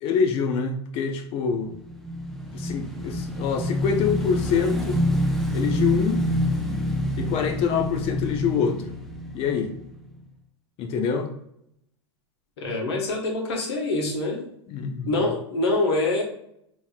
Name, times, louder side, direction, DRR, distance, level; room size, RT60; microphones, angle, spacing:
voice 1, 0.0-1.7 2.5-5.0 5.5-6.2 7.2-8.9 9.3-9.7 10.8-11.3 14.7-15.3, left 6 dB, 40° left, 6 dB, 0.8 m, -25 dB
Motorcycle / Engine, 1.7-10.2, left 1 dB, ahead, 0.7 m, -27 dB
voice 2, 12.6-14.4 15.0-16.2, left 2 dB, 65° left, 0 dB, 1.5 m, -25 dB
5.4 x 3.1 x 2.4 m, 0.74 s
figure-of-eight pair, 90°, 15 cm